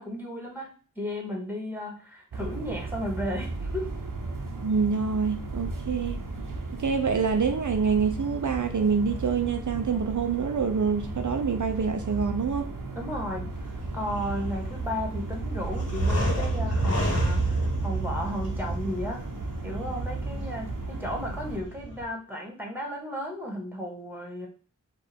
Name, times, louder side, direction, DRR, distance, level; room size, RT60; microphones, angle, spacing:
voice 1, 0.0-3.9 12.9-19.2 19.6-24.5, equal, 5° right, 1 dB, 1.5 m, -34 dB
sound 1, 2.3-21.6, right 3 dB, 85° right, 0.8 m, -35 dB
voice 2, 4.6-6.2 6.8-12.7, right 5 dB, 70° right, 6 dB, 0.5 m, -26 dB
sound 2, 13.5-22.0, right 1 dB, 50° left, 1.6 m, -30 dB
5.1 x 2.4 x 4.2 m, 0.38 s
wide cardioid pair, 50°, 32 cm